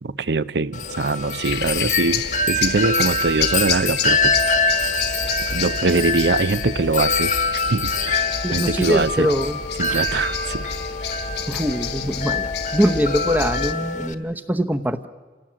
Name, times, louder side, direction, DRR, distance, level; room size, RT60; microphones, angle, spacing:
voice 1, 0.0-4.4 5.5-9.3 9.8-10.6, right 3 dB, 65° right, 17 dB, 0.6 m, -23 dB
Wind chime, 0.7-14.1, left 3 dB, 40° left, 1.1 m, -24 dB
sound 1, 1.4-13.7, left 7 dB, 65° left, 1.2 m, -30 dB
voice 2, 8.4-9.6 9.9-10.0 11.5-15.1, equal, 10° right, 9 dB, 0.9 m, -23 dB
28.0 x 17.0 x 7.5 m, 1.4 s
head